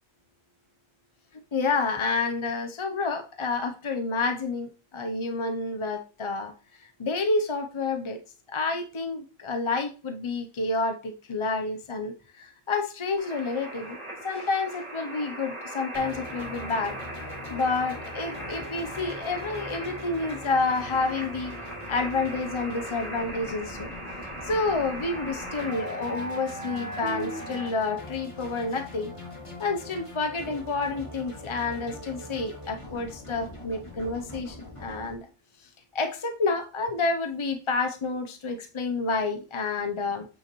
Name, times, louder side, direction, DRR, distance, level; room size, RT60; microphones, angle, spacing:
voice 1, 1.5-8.2 8.5-14.0 14.2-17.0 17.5-21.5 21.9-23.9 24.4-29.1 29.6-35.3 35.6-40.3, left 3 dB, 40° left, 6 dB, 0.4 m, -29 dB
sound 1, 13.2-27.7, right 1 dB, 20° right, 4.0 m, -38 dB
sound 2, 15.9-35.1, left 1 dB, 20° left, 1.9 m, -42 dB
8.6 x 5.6 x 3.0 m, 0.34 s
omnidirectional pair, 1.4 m